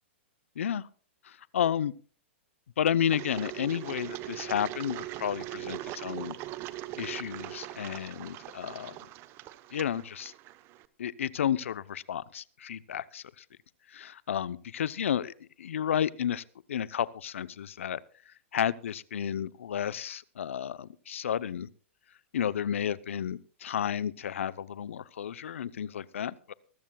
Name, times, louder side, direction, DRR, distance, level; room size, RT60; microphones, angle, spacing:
voice 1, 0.6-0.9 1.2-1.9 2.8-6.4 7.0-9.0 9.7-10.3 11.0-13.4 13.9-18.0 18.3-21.7 22.3-26.5, left 9 dB, 80° left, 18 dB, 0.7 m, -32 dB
Engine, 3.1-10.8, right 16 dB, 35° right, 0.9 m, -41 dB
23.5 x 14.0 x 2.3 m, 0.40 s
hypercardioid pair, 125°, 7 cm